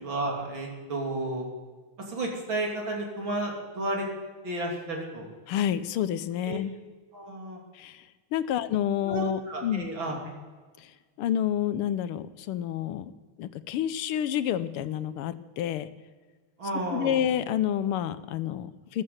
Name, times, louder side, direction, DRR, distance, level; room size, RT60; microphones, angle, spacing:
voice 1, 0.0-1.4 2.0-4.1 4.4-5.3 6.5-6.6 7.1-7.6 8.5-8.6 9.1-10.2 16.6-17.2, right 1 dB, 60° right, 0 dB, 3.7 m, -32 dB
voice 2, 5.5-6.7 7.7-8.0 8.3-9.9 10.8-10.9 11.2-13.1 13.4-15.9 16.9-19.0, left 10 dB, 85° left, 13 dB, 1.7 m, -29 dB
14.5 x 11.0 x 8.0 m, 1.4 s
omnidirectional pair, 2.4 m